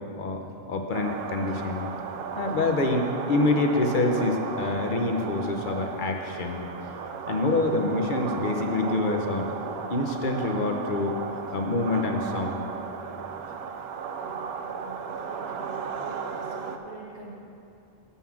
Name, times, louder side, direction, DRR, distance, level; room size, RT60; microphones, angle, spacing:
voice 1, 0.2-1.9 2.4-6.7 7.3-9.5 9.9-11.1 11.5-12.6, left 2 dB, 55° left, 3 dB, 0.9 m, -26 dB
sound 1, 0.9-16.8, right 6 dB, 75° right, 0.8 m, -35 dB
voice 2, 14.2-17.3, right 3 dB, 45° right, -4 dB, 1.0 m, -45 dB
7.2 x 5.6 x 7.2 m, 2.7 s
omnidirectional pair, 1.1 m